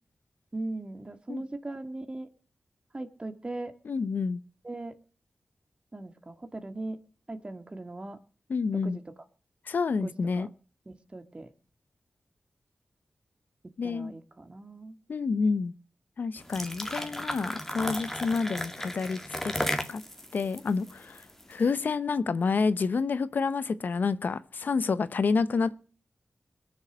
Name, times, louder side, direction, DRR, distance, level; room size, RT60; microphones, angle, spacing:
voice 1, 0.5-2.3 2.9-3.7 4.6-5.0 5.9-7.0 7.3-8.2 8.7-9.0 10.0-10.5 10.9-11.5 13.8-15.0, right 2 dB, 35° right, 2.0 m, -39 dB
voice 2, 3.9-4.4 8.5-9.0 9.7-10.5 13.8-14.1 15.1-15.7 16.2-19.5 19.9-20.0 20.3-21.2 21.5-25.8, left 4 dB, 75° left, 0.8 m, -28 dB
sound 1, 16.4-21.6, left 1 dB, 10° left, 2.1 m, -35 dB
21.5 x 7.2 x 6.3 m
cardioid pair, 55°, 3 cm